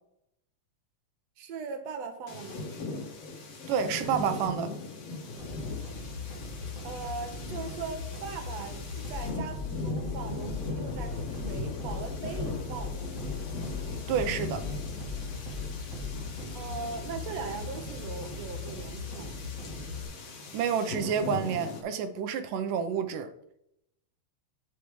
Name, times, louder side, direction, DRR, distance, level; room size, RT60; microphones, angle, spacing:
voice 1, 1.4-2.7 6.8-13.4 16.5-19.3, right 5 dB, 60° right, 2.1 m, -39 dB
sound 1, 2.3-21.8, left 3 dB, 55° left, 2.6 m, -39 dB
voice 2, 3.7-4.7 14.1-14.7 20.5-23.3, right 7 dB, 85° right, 2.4 m, -29 dB
sound 2, 5.4-20.0, left 4 dB, 30° right, 1.8 m, -38 dB
9.3 x 8.5 x 3.2 m
omnidirectional pair, 3.7 m